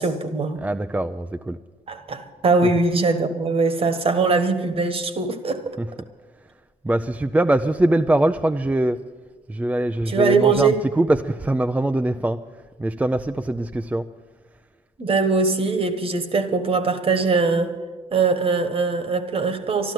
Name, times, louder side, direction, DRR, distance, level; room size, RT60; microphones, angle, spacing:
voice 1, 0.0-0.6 1.9-5.6 10.1-10.8 15.0-17.7 18.1-19.9, right 4 dB, 40° right, 10 dB, 1.4 m, -21 dB
voice 2, 0.6-1.6 2.6-2.7 5.8-5.9 6.4-6.5 6.8-9.0 9.5-12.4 12.8-14.1, right 1 dB, 10° right, 8 dB, 0.4 m, -22 dB
12.5 x 12.0 x 7.7 m, 1.4 s
cardioid pair, 90°, 15 cm